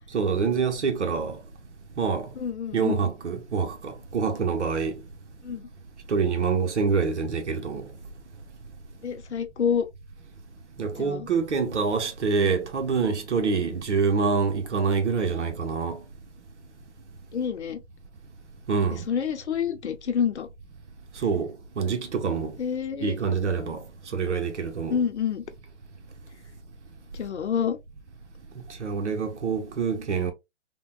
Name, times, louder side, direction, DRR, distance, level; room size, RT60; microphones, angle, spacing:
voice 1, 0.1-1.4 2.0-2.3 2.7-5.0 6.1-7.9 10.8-16.0 18.7-19.1 21.2-22.6 23.0-23.8 24.1-25.0 28.8-30.3, right 5 dB, 75° right, 0.9 m, -26 dB
voice 2, 2.4-3.0 5.4-5.7 9.0-9.9 11.0-11.3 17.3-17.8 19.1-20.5 22.6-23.2 24.9-25.4 27.1-27.8, left 7 dB, 70° left, 0.7 m, -27 dB
3.6 x 2.2 x 2.3 m
hypercardioid pair, 145°, 35 cm